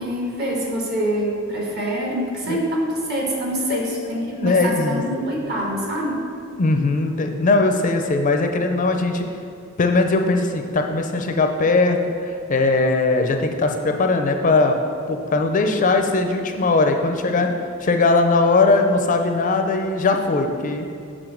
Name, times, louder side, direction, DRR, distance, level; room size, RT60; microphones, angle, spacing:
voice 1, 0.0-6.3, equal, 50° right, -2 dB, 1.4 m, -25 dB
voice 2, 3.7-5.0 6.6-9.3 9.8-14.8 15.1-17.5 17.8-20.8, left 3 dB, 40° left, 5 dB, 0.4 m, -20 dB
6.9 x 3.7 x 6.2 m, 2.5 s
head